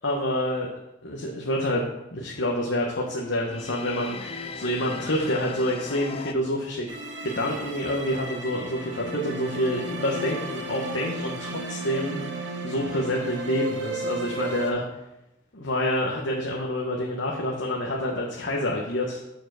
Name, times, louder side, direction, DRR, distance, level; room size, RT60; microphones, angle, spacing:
voice 1, 0.0-0.7 1.0-6.9 7.2-12.2 12.6-14.8 15.5-19.2, left 1 dB, 75° left, -2 dB, 1.1 m, -27 dB
sound 1, 3.4-6.3, left 4 dB, 30° left, 0.4 m, -37 dB
sound 2, 6.9-14.7, right 2 dB, 65° right, 1.4 m, -34 dB
7.0 x 4.7 x 6.2 m, 0.91 s
head